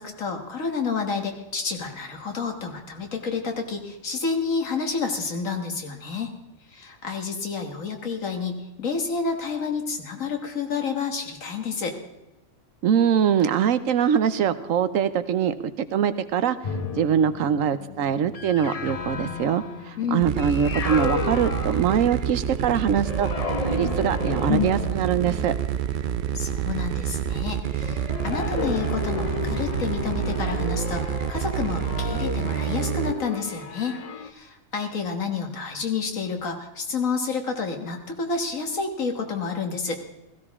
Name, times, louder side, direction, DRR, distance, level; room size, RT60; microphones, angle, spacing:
voice 1, 0.0-6.3 6.7-12.0 20.0-20.3 26.3-40.0, left 5 dB, 85° left, 4 dB, 2.0 m, -29 dB
voice 2, 12.8-16.6 17.0-23.3 23.6-25.5, right 8 dB, 85° right, 12 dB, 1.2 m, -23 dB
sound 1, 16.6-22.6 23.0-27.0 27.8-34.3, left 5 dB, 40° left, 0.6 m, -32 dB
sound 2, 20.2-33.1, right 9 dB, 55° right, 0.6 m, -28 dB
16.5 x 15.5 x 3.6 m, 0.98 s
omnidirectional pair, 1.3 m